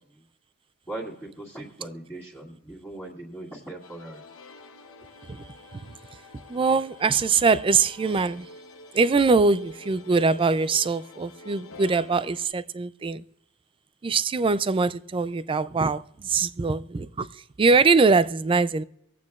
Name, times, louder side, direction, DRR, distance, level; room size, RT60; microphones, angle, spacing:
voice 1, 0.9-4.2, right 2 dB, 10° left, 2.0 m, -39 dB
sound 1, 3.8-12.5, left 2 dB, 65° left, 0.9 m, -47 dB
voice 2, 5.3-5.9 6.5-8.5 8.9-13.2 14.0-18.8, right 4 dB, 25° right, 0.3 m, -23 dB
25.5 x 8.5 x 2.4 m
head